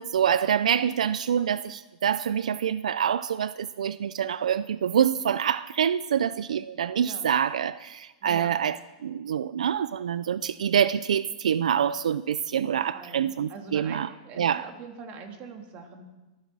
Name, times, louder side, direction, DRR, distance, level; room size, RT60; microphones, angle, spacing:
voice 1, 0.0-8.8 9.0-14.1 14.4-14.6, right 8 dB, 90° right, 16 dB, 0.4 m, -26 dB
voice 2, 7.0-7.3 8.2-8.5 10.2-10.5 12.6-16.0, right 5 dB, 35° right, 4 dB, 2.9 m, -44 dB
24.5 x 9.6 x 6.2 m, 1.1 s
hypercardioid pair, 135°, 4 cm